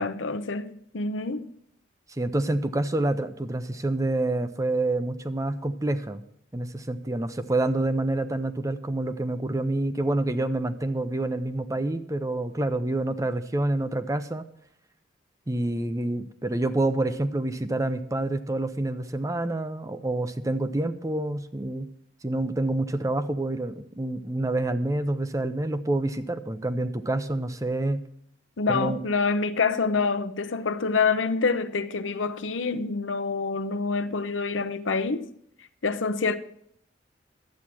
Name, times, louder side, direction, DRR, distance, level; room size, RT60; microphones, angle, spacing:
voice 1, 0.0-1.5 28.6-35.3 35.8-36.4, left 4 dB, 90° left, 0.7 m, -26 dB
voice 2, 2.1-6.2 6.5-14.5 15.5-21.9 22.2-28.0 28.7-29.0, right 2 dB, 15° right, 0.6 m, -27 dB
11.5 x 8.5 x 6.1 m
head